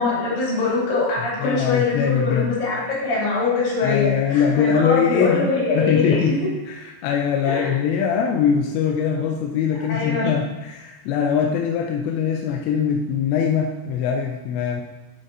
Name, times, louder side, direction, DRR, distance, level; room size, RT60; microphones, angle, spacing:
voice 1, 0.0-6.4 7.4-7.7 9.9-10.3, left 3 dB, 60° left, -6 dB, 4.1 m, -23 dB
voice 2, 1.2-2.5 3.8-14.8, left 7 dB, 90° left, 1 dB, 2.8 m, -22 dB
8.1 x 7.3 x 2.7 m, 1.1 s
omnidirectional pair, 4.9 m